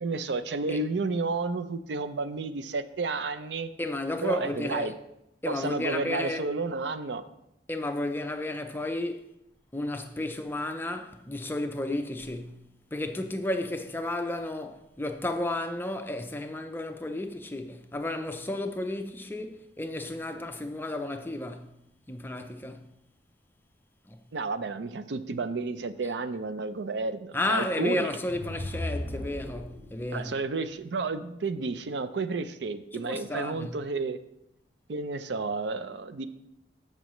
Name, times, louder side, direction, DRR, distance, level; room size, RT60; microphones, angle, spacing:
voice 1, 0.0-3.7 4.2-5.0 5.5-7.2 24.3-28.1 30.1-34.2 34.9-36.3, right 3 dB, 75° right, 0.5 m, -31 dB
voice 2, 3.8-4.9 5.4-6.4 7.7-9.3 9.7-12.6 12.9-21.7 22.1-22.9 24.1-24.2 27.3-30.4 32.9-33.8, left 1 dB, 10° left, 0.5 m, -32 dB
sound 1, 28.1-30.1, left 1 dB, 35° right, 3.3 m, -36 dB
13.5 x 5.4 x 3.1 m
head